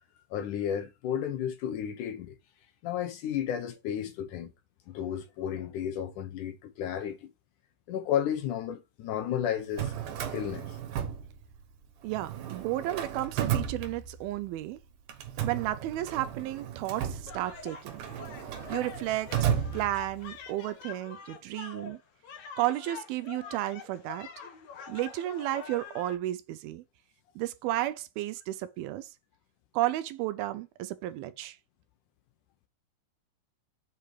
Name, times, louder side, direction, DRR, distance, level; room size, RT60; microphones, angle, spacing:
voice 1, 0.3-2.4 2.8-4.5 4.9-7.3 7.9-10.8, left 9 dB, 75° left, 1.9 m, -33 dB
Drawer open or close, 9.6-11.8 12.1-14.5 15.1-20.4, right 9 dB, 65° right, 2.4 m, -34 dB
voice 2, 12.0-14.8 15.4-18.0 18.7-22.0 22.6-24.3 24.9-26.8 27.4-29.1 29.7-31.6, right 15 dB, 80° right, 2.3 m, -33 dB
sound 1, 17.3-26.1, left 6 dB, 55° left, 2.4 m, -45 dB
8.3 x 4.2 x 4.8 m
omnidirectional pair, 4.6 m